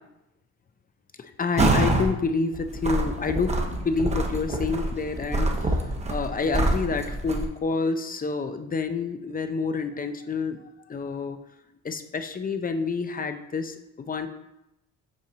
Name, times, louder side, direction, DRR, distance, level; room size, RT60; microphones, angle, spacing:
voice 1, 1.2-11.4 11.8-14.3, left 4 dB, 30° left, 8 dB, 0.6 m, -28 dB
sound 1, 1.6-2.1 2.5-7.5, right 2 dB, 20° right, 0.9 m, -25 dB
6.2 x 4.4 x 3.9 m, 0.88 s
cardioid pair, 90°, 30 cm